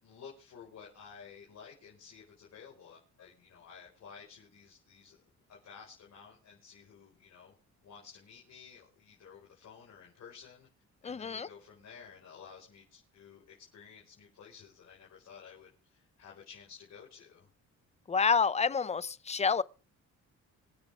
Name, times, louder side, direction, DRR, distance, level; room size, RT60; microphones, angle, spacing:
voice 1, 0.0-5.2 5.5-7.5 7.8-10.7 11.0-17.5, left 6 dB, 60° left, 5.3 m, -53 dB
voice 2, 11.0-11.5 18.1-19.6, left 5 dB, 20° left, 0.6 m, -28 dB
26.5 x 8.9 x 3.6 m
cardioid pair, 90°, 30 cm